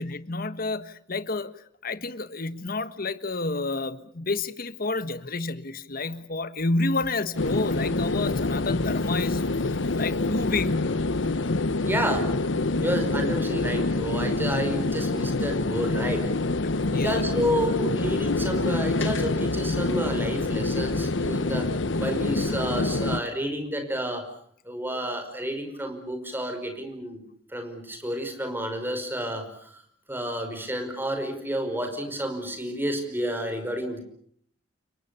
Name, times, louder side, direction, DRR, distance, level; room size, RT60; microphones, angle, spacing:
voice 1, 0.0-1.5 1.8-10.9 16.9-17.3, left 3 dB, 50° left, 1.4 m, -30 dB
sound 1, 7.4-23.2, left 2 dB, 75° left, 1.0 m, -26 dB
voice 2, 11.8-12.3 12.8-16.2 16.9-21.7 22.0-24.3 24.7-27.2 27.5-29.7 30.1-34.0, equal, 10° right, 5.4 m, -30 dB
29.5 x 24.0 x 6.9 m
head